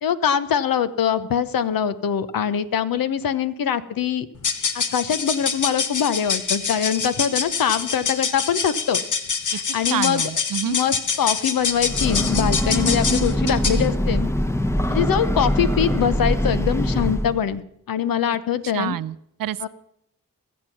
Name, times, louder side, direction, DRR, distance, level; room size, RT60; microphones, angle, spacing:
voice 1, 0.0-4.3 4.7-9.0 9.5-10.2 10.6-14.3 14.9-17.6 17.9-19.0 19.6-19.7, left 8 dB, 80° left, 13 dB, 0.9 m, -23 dB
sound 1, 4.4-13.9, left 5 dB, 60° left, 1.2 m, -26 dB
voice 2, 9.9-10.8 18.6-19.6, right 11 dB, 75° right, 18 dB, 0.6 m, -28 dB
Breathing / Train, 11.7-17.5, equal, 10° left, 0.9 m, -23 dB
21.5 x 7.5 x 6.0 m, 0.76 s
cardioid pair, 45°, 34 cm